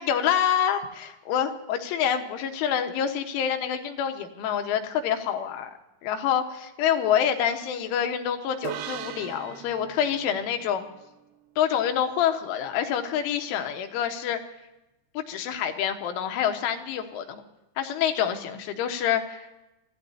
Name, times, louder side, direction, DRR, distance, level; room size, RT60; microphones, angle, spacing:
voice 1, 0.0-5.7 6.0-10.9 11.6-14.4 15.2-17.4 17.8-19.5, left 9 dB, 90° left, 5 dB, 3.8 m, -27 dB
sound 1, 8.6-12.1, right 10 dB, 75° right, 2.6 m, -40 dB
27.0 x 16.0 x 2.8 m, 0.96 s
omnidirectional pair, 5.4 m